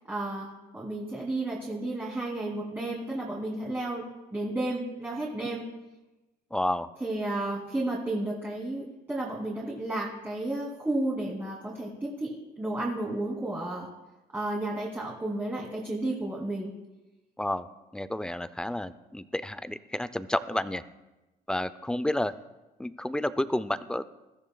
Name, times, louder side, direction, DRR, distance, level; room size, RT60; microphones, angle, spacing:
voice 1, 0.1-4.1 4.3-5.6 7.0-13.9 14.3-16.8, right 2 dB, 10° right, -5 dB, 2.7 m, -32 dB
voice 2, 6.5-6.9 17.4-17.7 17.9-20.8 21.5-22.3 22.8-24.0, left 1 dB, 5° left, 13 dB, 0.5 m, -30 dB
20.5 x 14.5 x 2.3 m, 1.1 s
cardioid pair, 110°, 17 cm